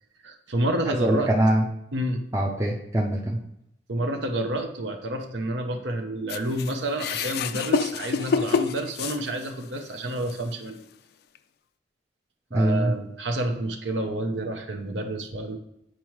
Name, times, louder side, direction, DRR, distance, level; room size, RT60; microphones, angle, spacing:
voice 1, 0.2-1.3 1.9-2.2 3.9-10.8 12.5-15.6, right 1 dB, 75° right, 4 dB, 0.8 m, -29 dB
voice 2, 0.9-1.6 2.3-3.4 12.5-12.9, right 1 dB, 15° right, -2 dB, 0.5 m, -23 dB
sound 1, 6.3-9.8 10.3-10.4 11.4-11.5, left 5 dB, 60° left, 0.3 m, -27 dB
8.8 x 4.7 x 3.1 m, 0.80 s
head